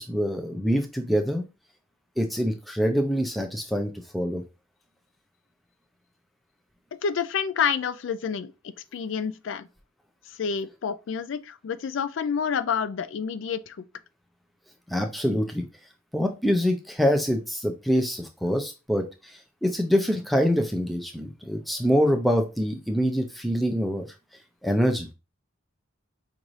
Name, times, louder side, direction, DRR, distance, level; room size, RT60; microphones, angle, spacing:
voice 1, 0.0-1.4 2.2-4.4 14.9-15.6 16.1-19.1 19.6-24.0 24.6-25.1, equal, ahead, 0.5 m, -25 dB
voice 2, 7.0-9.7 10.3-13.8, left 6 dB, 65° left, 0.3 m, -29 dB
5.2 x 2.6 x 3.1 m
head